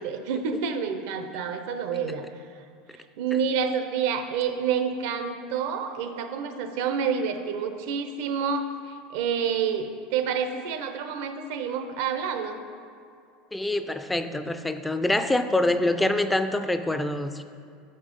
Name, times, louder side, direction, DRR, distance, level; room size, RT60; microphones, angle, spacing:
voice 1, 0.0-2.5 2.9-12.6, right 6 dB, 70° right, 7 dB, 0.7 m, -28 dB
voice 2, 13.5-17.4, left 1 dB, 5° left, 10 dB, 0.3 m, -25 dB
6.7 x 5.4 x 5.3 m, 2.4 s
supercardioid pair, 130°, 0 cm